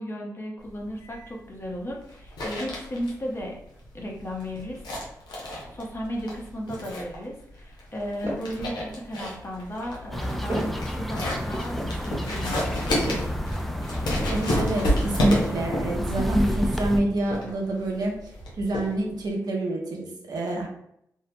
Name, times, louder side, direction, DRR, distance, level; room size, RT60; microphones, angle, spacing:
voice 1, 0.0-3.6 3.9-4.9 5.7-13.2, equal, 35° left, -1 dB, 0.8 m, -35 dB
sound 1, 0.7-19.3, left 1 dB, 85° left, 0.6 m, -32 dB
sound 2, 8.0-8.6 9.2-16.3, equal, 40° right, 1.1 m, -37 dB
sound 3, 10.1-17.0, equal, ahead, 0.3 m, -30 dB
voice 2, 14.3-18.1 18.6-20.7, right 1 dB, 65° right, -1 dB, 0.7 m, -27 dB
2.7 x 2.0 x 2.6 m, 0.74 s
supercardioid pair, 45°, 7 cm